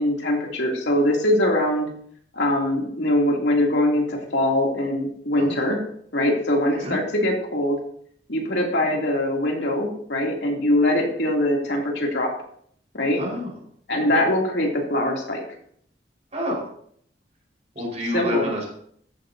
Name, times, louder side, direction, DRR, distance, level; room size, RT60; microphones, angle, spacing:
voice 1, 0.0-1.9 2.3-5.8 6.1-7.8 8.3-12.3 12.9-13.2 13.9-15.4 18.1-18.4, left 1 dB, 75° left, -1 dB, 2.8 m, -22 dB
voice 2, 13.2-13.5 16.3-16.7 17.7-18.6, left 1 dB, 40° right, -2 dB, 4.6 m, -28 dB
14.0 x 11.0 x 2.7 m, 0.64 s
head